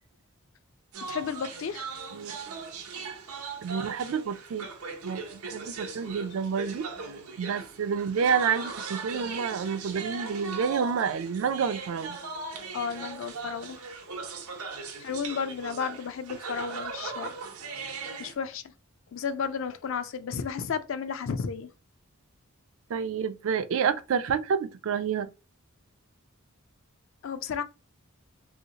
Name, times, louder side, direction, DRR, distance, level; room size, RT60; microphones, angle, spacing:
sound 1, 0.9-18.3, right 4 dB, 80° right, 0.7 m, -39 dB
voice 1, 1.1-1.9 12.7-13.8 15.0-17.4 18.2-18.7 19.1-21.7 27.2-27.6, left 6 dB, 60° left, 0.4 m, -33 dB
voice 2, 3.6-4.7 5.0-6.9 7.4-12.2 22.9-25.3, right 6 dB, 65° right, 0.3 m, -29 dB
3.0 x 2.8 x 2.8 m
head